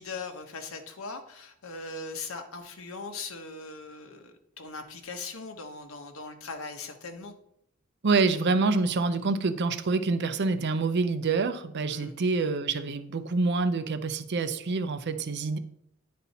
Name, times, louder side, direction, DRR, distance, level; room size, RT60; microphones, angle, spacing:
voice 1, 0.0-7.3 11.9-12.2, left 3 dB, 75° left, 6 dB, 0.9 m, -40 dB
voice 2, 8.0-15.6, right 3 dB, 55° right, 10 dB, 0.6 m, -26 dB
9.6 x 4.2 x 4.1 m, 0.71 s
head